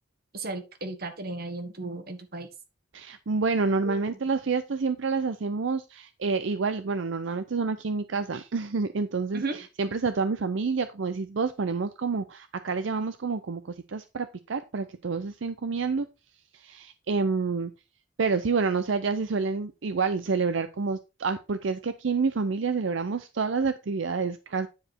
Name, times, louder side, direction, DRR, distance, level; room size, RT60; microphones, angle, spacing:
voice 1, 0.3-2.5 3.8-4.2 9.3-9.6, right 3 dB, 55° right, 9 dB, 1.4 m, -35 dB
voice 2, 2.9-9.4 9.8-16.1 16.5-17.7 18.2-24.7, right 4 dB, 75° right, 11 dB, 0.6 m, -28 dB
9.7 x 5.0 x 4.3 m, 0.28 s
head